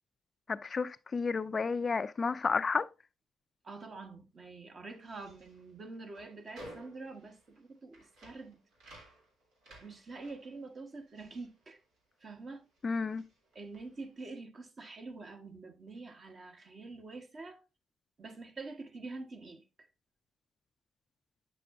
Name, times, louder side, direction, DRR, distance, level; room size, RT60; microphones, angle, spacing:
voice 1, 0.5-2.9 12.8-13.2, left 4 dB, 35° left, 0.3 m, -31 dB
voice 2, 3.6-8.7 9.7-11.8 12.2-12.6 13.5-17.6 18.2-19.9, right 3 dB, 40° right, 1.3 m, -46 dB
sound 1, 4.9-12.4 12.7-14.1, right 1 dB, 85° right, 3.1 m, -56 dB
8.4 x 6.5 x 2.6 m
cardioid pair, 90°, 0 cm